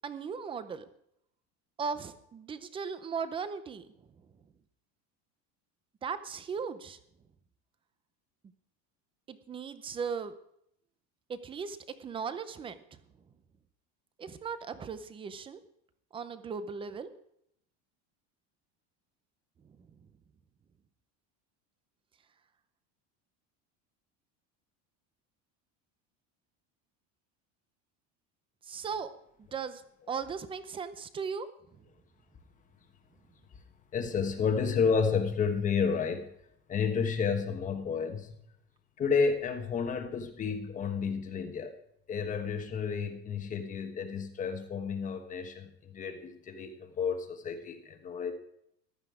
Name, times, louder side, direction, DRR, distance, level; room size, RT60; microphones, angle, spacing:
voice 1, 0.0-0.8 1.8-3.9 6.0-7.0 9.3-10.3 11.3-13.0 14.2-15.6 16.1-17.1 19.6-19.9 28.6-29.1 29.5-29.8 30.1-31.8, right 6 dB, 15° right, 13 dB, 0.6 m, -37 dB
voice 2, 33.9-36.3 36.7-38.3 39.0-41.7 42.1-48.3, left 6 dB, 20° left, 7 dB, 1.2 m, -31 dB
15.0 x 12.0 x 4.9 m, 0.72 s
cardioid pair, 175°, 36 cm